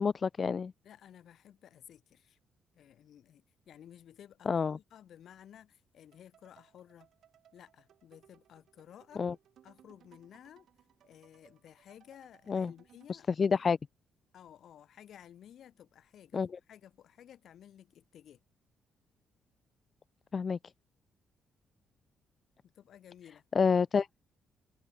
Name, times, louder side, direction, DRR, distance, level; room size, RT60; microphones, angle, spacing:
voice 1, 0.0-0.7 4.5-4.8 9.2-9.3 12.5-12.7 13.1-13.8 16.3-16.5 20.3-20.6 23.6-24.1, left 5 dB, 40° left, 0.4 m, -28 dB
voice 2, 0.8-2.4 2.7-7.1 7.5-9.3 9.6-10.7 11.0-13.6 14.3-16.4 16.7-18.4 22.6-23.4, left 10 dB, 65° left, 7.2 m, -55 dB
sound 1, 6.1-13.2, right 10 dB, 65° right, 3.9 m, -65 dB
cardioid pair, 110°, 0 cm